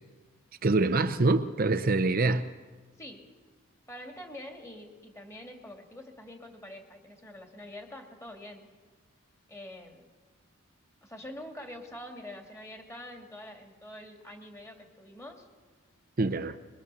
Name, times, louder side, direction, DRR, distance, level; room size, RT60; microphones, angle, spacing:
voice 1, 0.6-2.4 16.2-16.6, right 3 dB, 45° right, 0.7 m, -25 dB
voice 2, 3.0-3.3 3.9-8.7 9.5-10.1 11.0-15.5, left 1 dB, 15° left, 2.5 m, -45 dB
22.5 x 22.5 x 7.0 m
head